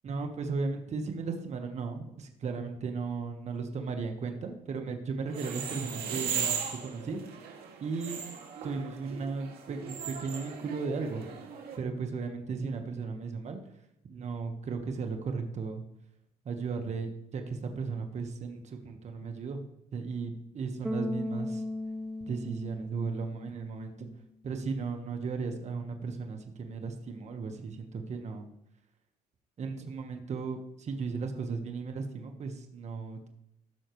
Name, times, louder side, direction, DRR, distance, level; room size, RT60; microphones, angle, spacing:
voice 1, 0.0-6.6 6.8-7.2 7.8-8.2 8.6-11.3 11.8-13.6 14.1-15.8 16.4-19.6 19.9-21.6 22.3-24.1 24.4-28.5 29.6-33.3, right 4 dB, 40° right, 4 dB, 1.4 m, -35 dB
shop.shutter, 5.3-11.8, right 7 dB, 65° right, 2.3 m, -38 dB
Bass guitar, 20.8-24.0, left 1 dB, 5° right, 0.6 m, -37 dB
15.0 x 6.4 x 3.2 m, 0.81 s
cardioid pair, 110°, 17 cm